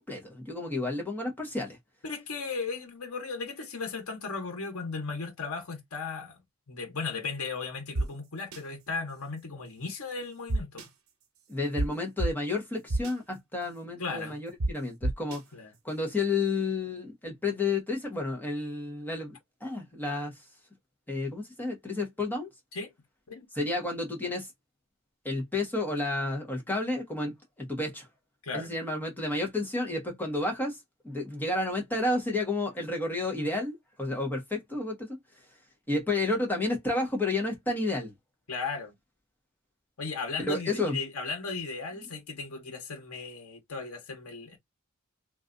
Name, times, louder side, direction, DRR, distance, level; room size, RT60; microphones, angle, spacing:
voice 1, 0.0-1.8 11.5-15.4 15.8-19.4 19.6-20.3 21.1-22.5 23.5-24.5 25.2-27.3 27.6-28.1 28.5-30.8 31.0-35.2 35.9-38.1 40.5-41.0, left 2 dB, 10° left, 1.1 m, -31 dB
voice 2, 2.0-6.4 6.7-10.9 14.0-14.4 15.5-15.7 22.7-22.9 23.3-23.5 28.4-28.7 38.5-38.9 40.0-44.6, left 4 dB, 85° left, 0.9 m, -36 dB
sound 1, 8.0-8.1 8.5-8.6 10.5-10.9 11.8-11.9 12.2-12.3 12.9-13.1 14.6-14.7 15.0-15.4, right 2 dB, 90° right, 0.9 m, -27 dB
3.2 x 2.5 x 2.4 m
head